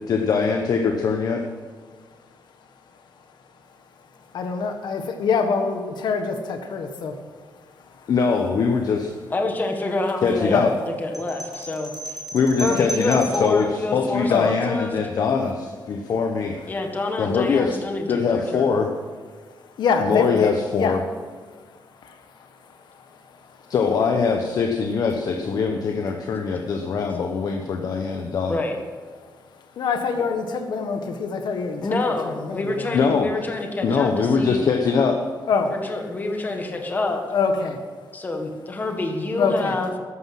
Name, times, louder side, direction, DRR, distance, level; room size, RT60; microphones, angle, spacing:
voice 1, 0.1-1.4 8.1-9.1 10.2-10.7 12.3-16.6 17.2-17.8 18.1-18.9 20.0-21.0 23.7-28.6 32.9-33.3 33.8-35.2, left 5 dB, 55° left, 3 dB, 1.1 m, -22 dB
voice 2, 4.3-7.2 7.8-8.1 10.5-10.7 12.7-12.8 14.3-14.5 19.6-21.0 21.5-23.7 29.5-32.9 35.5-35.7 37.3-37.8 39.4-39.7, left 5 dB, 75° left, 6 dB, 1.6 m, -26 dB
voice 3, 9.3-10.7 11.0-12.2 12.6-14.9 16.7-18.7 28.5-28.8 31.8-34.6 35.6-37.2 38.1-39.9, left 2 dB, 25° left, 3 dB, 1.6 m, -27 dB
sound 1, 11.1-13.6, right 1 dB, 5° right, 2.8 m, -34 dB
14.0 x 11.5 x 5.9 m, 1.5 s
wide cardioid pair, 170°, 7 cm